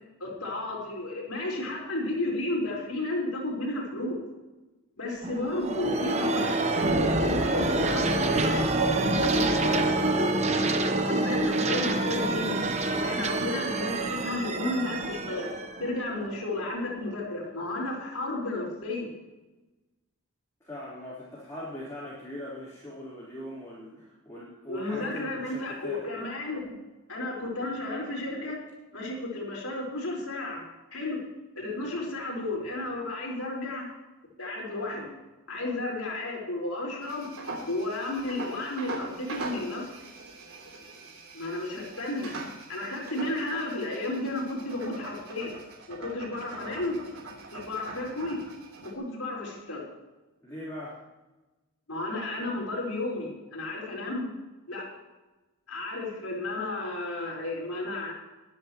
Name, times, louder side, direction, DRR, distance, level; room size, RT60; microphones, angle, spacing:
voice 1, 0.2-4.2 5.0-6.6 7.2-8.6 8.9-10.5 11.0-12.6 13.0-15.5 15.8-19.1 24.7-26.7 27.1-28.6 28.9-31.2 31.6-33.9 34.4-35.1 35.5-37.3 37.7-39.9 41.3-42.4 42.7-45.6 45.9-47.0 47.5-48.4 48.8-49.8 51.9-54.3 54.7-54.9 55.7-58.1, left 2 dB, 80° left, -2 dB, 4.7 m, -33 dB
sound 1, 5.2-16.7, right 2 dB, 30° right, 1.0 m, -27 dB
voice 2, 20.6-26.0 50.4-51.0, left 1 dB, 15° left, -9 dB, 4.0 m, -40 dB
sound 2, 37.0-48.9, right 2 dB, 70° right, 3.5 m, -42 dB
22.5 x 10.5 x 3.1 m, 1.1 s
head